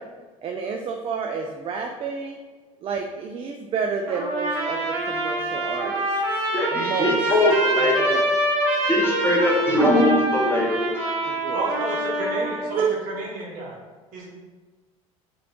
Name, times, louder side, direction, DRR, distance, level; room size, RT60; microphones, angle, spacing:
voice 1, 0.4-2.4 2.8-6.4 6.7-7.1 7.8-8.2 11.2-11.7 12.8-13.0, right 6 dB, 30° right, 3 dB, 0.4 m, -30 dB
Trumpet, 4.1-12.7, right 1 dB, 65° right, 1.2 m, -25 dB
voice 2, 6.5-8.1 8.9-10.9, left 1 dB, 10° left, -3 dB, 0.8 m, -21 dB
voice 3, 11.5-13.8 14.1-14.3, right 1 dB, 50° right, -3 dB, 1.3 m, -31 dB
4.7 x 3.0 x 2.4 m, 1.3 s
figure-of-eight pair, 70°, 18 cm